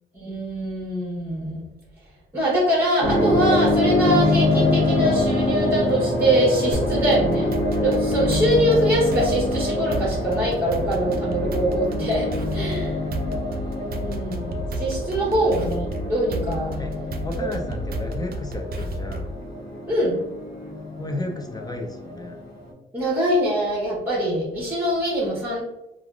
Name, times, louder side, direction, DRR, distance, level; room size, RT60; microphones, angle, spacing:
voice 1, 0.1-1.6 2.3-13.0 14.0-16.7 17.4-17.5 19.9-20.2 22.9-25.6, right 1 dB, 10° right, -4 dB, 0.9 m, -23 dB
sound 1, 3.0-22.7, left 2 dB, 55° left, 1.1 m, -25 dB
sound 2, 6.7-19.4, right 1 dB, 50° right, 0.5 m, -31 dB
voice 2, 12.9-13.2 16.8-16.9 17.2-19.3 21.0-22.4, left 2 dB, 20° left, 2 dB, 0.4 m, -33 dB
3.3 x 2.4 x 2.3 m, 0.92 s
cardioid pair, 90°, 20 cm